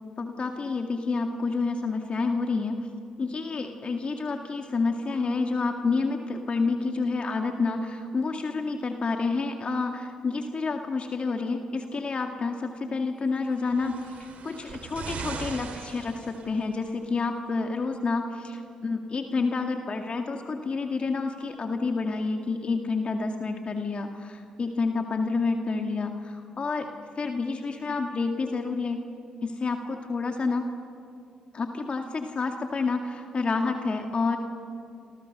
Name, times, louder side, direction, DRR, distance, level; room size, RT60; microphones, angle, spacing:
voice 1, 0.2-2.9 3.2-26.9 27.2-29.0 29.4-30.7 31.5-34.4, left 4 dB, 45° left, 4 dB, 2.0 m, -29 dB
sound 1, 13.5-16.9 17.8-17.9, right 4 dB, 65° right, 3.6 m, -39 dB
29.5 x 27.0 x 6.7 m, 2.4 s
hypercardioid pair, 50°, 3 cm